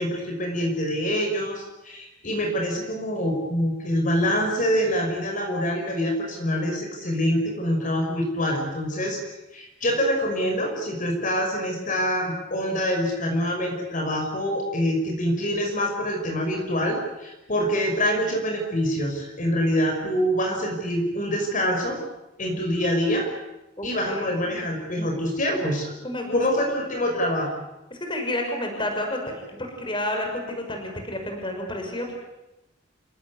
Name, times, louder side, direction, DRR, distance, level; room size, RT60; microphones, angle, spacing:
voice 1, 0.0-9.2 9.5-22.0 22.4-23.3 23.8-25.9 26.3-27.5, equal, 45° left, 2 dB, 5.7 m, -25 dB
voice 2, 23.8-24.4 26.0-26.4 27.9-32.1, left 1 dB, 25° left, 3 dB, 5.9 m, -30 dB
28.5 x 18.0 x 9.8 m, 0.95 s
head